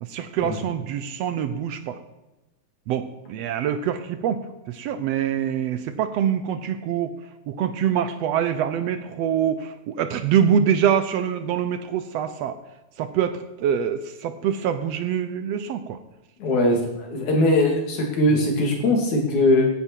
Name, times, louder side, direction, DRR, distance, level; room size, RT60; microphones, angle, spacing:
voice 1, 0.0-2.0 2.9-4.4 4.7-7.1 7.5-12.6 13.0-16.0, right 8 dB, 75° right, 10 dB, 1.6 m, -25 dB
voice 2, 16.4-19.6, left 1 dB, 80° left, 1 dB, 3.9 m, -20 dB
15.5 x 9.8 x 4.5 m, 1.0 s
omnidirectional pair, 3.3 m